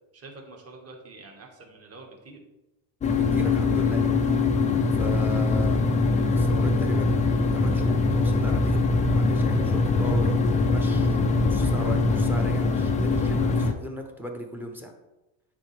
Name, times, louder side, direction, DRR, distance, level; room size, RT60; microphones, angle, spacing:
voice 1, 0.1-2.4 5.1-5.3, right 3 dB, 30° right, 2 dB, 1.4 m, -46 dB
sound 1, 3.0-13.7, left 3 dB, 20° left, 0.3 m, -22 dB
voice 2, 3.1-4.1 4.9-5.9 6.2-14.9, equal, 5° right, 3 dB, 0.7 m, -37 dB
9.7 x 4.2 x 3.3 m, 1.0 s
cardioid pair, 140°, 47 cm